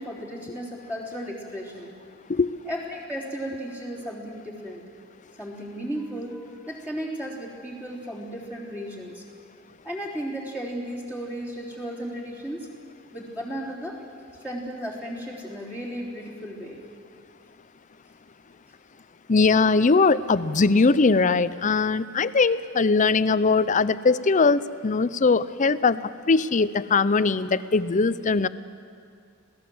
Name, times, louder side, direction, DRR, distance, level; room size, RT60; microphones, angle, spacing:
voice 1, 0.0-1.9 2.7-4.8 5.4-6.4 6.7-9.2 9.8-12.7 13.1-14.0 14.4-16.8, equal, 10° right, -5 dB, 3.6 m, -34 dB
voice 2, 19.3-28.5, left 4 dB, 40° left, 15 dB, 0.6 m, -21 dB
27.0 x 17.0 x 7.9 m, 2.3 s
head